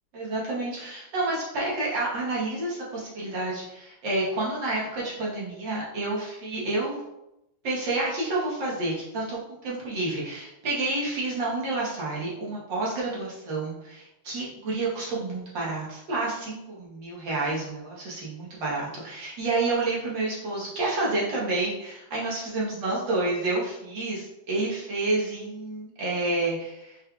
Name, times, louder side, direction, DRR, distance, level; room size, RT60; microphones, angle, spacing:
voice 1, 0.1-7.0 7.6-27.0, right 2 dB, 60° right, -6 dB, 1.8 m, -29 dB
5.0 x 3.3 x 2.3 m, 0.87 s
omnidirectional pair, 2.4 m